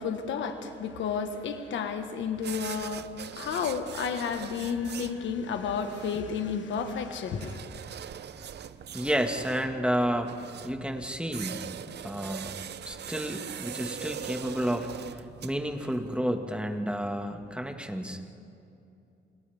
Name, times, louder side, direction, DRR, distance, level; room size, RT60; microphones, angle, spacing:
voice 1, 0.0-7.6, left 6 dB, 85° left, 7 dB, 1.5 m, -32 dB
sound 1, 2.3-16.2, right 9 dB, 60° right, 0.7 m, -42 dB
voice 2, 8.9-10.3 10.6-11.7 12.0-12.6 12.8-18.3, equal, 5° right, 4 dB, 1.8 m, -31 dB
29.0 x 28.0 x 3.6 m, 2.6 s
cardioid pair, 80°, 19 cm